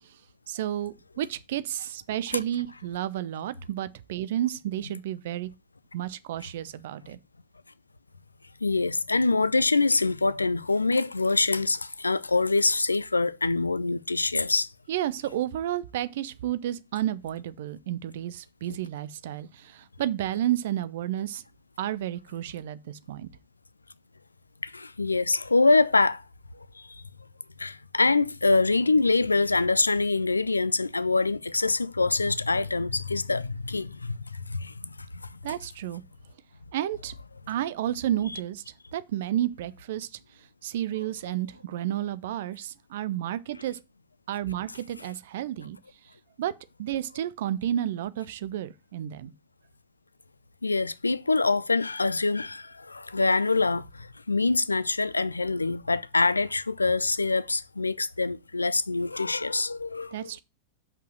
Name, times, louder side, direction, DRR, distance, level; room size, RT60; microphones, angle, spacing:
voice 1, 0.5-5.5 5.9-7.2 14.9-21.4 21.8-23.3 35.4-36.0 36.7-37.1 37.5-38.6 38.9-40.1 40.6-43.8 44.3-45.8 46.4-46.5 46.8-49.3 60.1-60.4, right 12 dB, 55° right, 0.6 m, -31 dB
voice 2, 8.6-14.7 18.7-18.8 24.6-26.2 26.5-26.9 27.6-35.4 50.6-60.3, left 3 dB, 80° left, 0.4 m, -25 dB
6.0 x 5.5 x 6.4 m
figure-of-eight pair, 90°, 0 cm